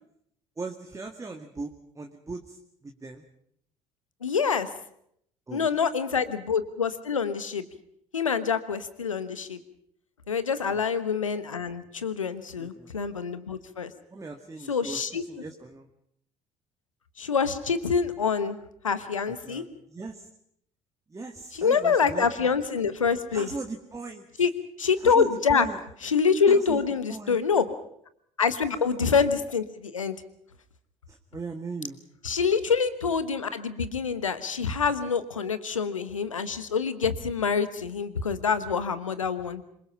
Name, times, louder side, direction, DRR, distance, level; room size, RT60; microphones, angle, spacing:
voice 1, 0.6-3.2 5.5-5.9 10.7-10.9 12.6-12.9 14.1-15.9 19.2-20.3 21.1-22.5 23.3-24.5 25.0-25.8 26.5-26.8 27.1-27.4 28.6-28.8 31.1-32.0, right 3 dB, 20° right, 4 dB, 2.0 m, -39 dB
voice 2, 4.2-4.7 5.5-7.6 8.1-9.6 10.3-13.9 14.7-15.2 17.2-18.6 18.8-19.6 21.5-23.5 24.4-24.5 24.8-25.7 26.0-27.7 28.4-30.2 32.2-39.6, left 6 dB, 85° left, 13 dB, 1.2 m, -26 dB
26.0 x 23.0 x 5.8 m, 0.70 s
figure-of-eight pair, 55°, 16 cm